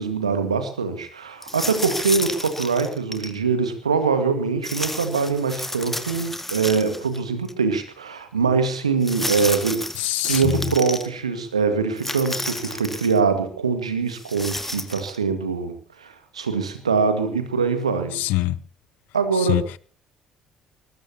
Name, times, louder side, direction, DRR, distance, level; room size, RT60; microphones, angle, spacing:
voice 1, 0.0-9.8 10.2-18.2 19.1-19.6, right 5 dB, 80° right, 2.0 m, -23 dB
sound 1, 1.4-3.3 4.6-7.2 7.5-7.6 9.0-11.1 12.0-13.2 14.1-15.2, left 1 dB, 10° left, 2.1 m, -31 dB
voice 2, 10.0-10.7 18.1-18.6 19.3-19.8, left 18 dB, 60° left, 0.7 m, -24 dB
22.5 x 20.0 x 3.0 m
figure-of-eight pair, 50°, 3 cm